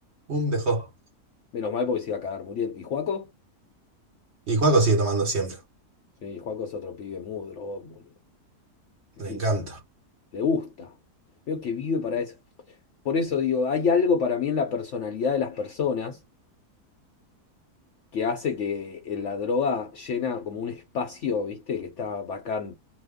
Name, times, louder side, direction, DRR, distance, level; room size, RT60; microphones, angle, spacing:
voice 1, 0.3-0.8 4.5-5.5 9.2-9.8, right 2 dB, 45° right, 1.3 m, -23 dB
voice 2, 1.5-3.3 6.2-8.0 9.3-9.4 10.3-10.9 11.5-12.3 13.0-16.2 18.1-22.7, left 5 dB, 60° left, 0.8 m, -28 dB
2.9 x 2.2 x 3.5 m
omnidirectional pair, 1.7 m